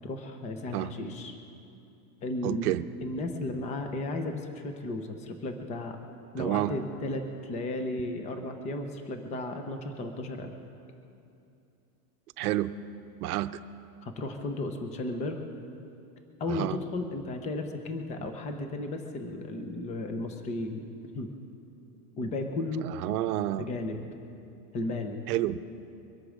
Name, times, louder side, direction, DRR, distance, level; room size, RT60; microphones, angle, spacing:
voice 1, 0.0-1.3 2.2-6.0 6.3-10.5 14.0-15.4 16.4-20.8 21.1-21.3 22.2-22.9 23.6-24.0 24.7-25.2, left 2 dB, 15° left, 6 dB, 0.7 m, -34 dB
voice 2, 2.4-2.8 6.4-6.7 12.4-12.7 13.2-13.5 16.5-16.8 23.0-23.7 25.3-25.6, right 15 dB, 75° right, 12 dB, 0.8 m, -29 dB
23.5 x 8.4 x 6.3 m, 2.7 s
supercardioid pair, 165°, 46 cm